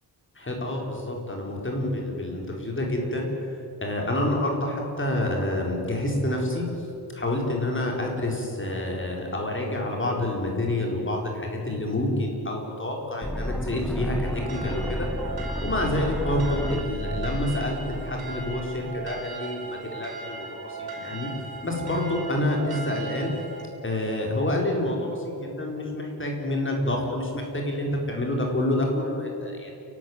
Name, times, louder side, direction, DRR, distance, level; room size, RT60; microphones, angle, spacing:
voice 1, 0.3-3.5 3.8-6.8 7.1-15.3 15.6-21.3 21.6-23.3 23.8-29.7, left 1 dB, 30° left, 0 dB, 4.4 m, -28 dB
sound 1, 13.2-19.2, equal, ahead, 0.7 m, -32 dB
sound 2, 14.2-23.6, right 4 dB, 65° right, 5.4 m, -38 dB
29.5 x 12.5 x 9.7 m, 2.7 s
wide cardioid pair, 150°, 40 cm